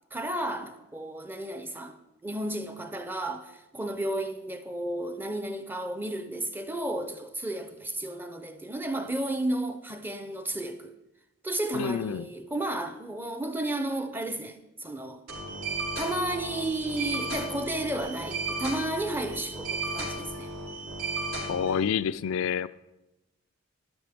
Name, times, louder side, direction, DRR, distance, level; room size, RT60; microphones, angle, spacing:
voice 1, 0.1-1.9 2.2-10.9 11.4-15.2 16.0-20.5, right 1 dB, 10° right, 0.6 m, -33 dB
voice 2, 11.7-12.3 21.5-22.7, left 7 dB, 75° left, 0.3 m, -28 dB
sound 1, 15.3-21.8, right 2 dB, 75° right, 4.5 m, -34 dB
12.0 x 11.0 x 3.5 m
head